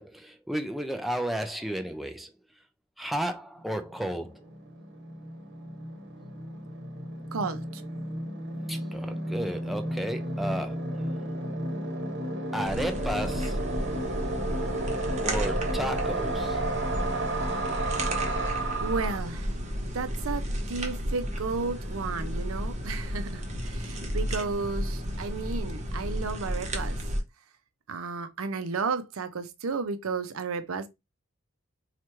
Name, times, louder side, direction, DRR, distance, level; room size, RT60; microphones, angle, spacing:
voice 1, 0.0-2.3 3.0-4.5 8.7-11.1 12.5-13.7 15.2-16.6, right 1 dB, ahead, 0.4 m, -33 dB
sound 1, 3.7-3.8 3.9-19.2, right 1 dB, 55° right, 1.0 m, -33 dB
voice 2, 7.3-7.8 18.8-19.6 19.9-27.0 27.9-30.9, right 4 dB, 80° right, 0.6 m, -33 dB
sound 2, 12.6-27.2, equal, 35° right, 0.8 m, -32 dB
3.0 x 2.4 x 4.3 m
head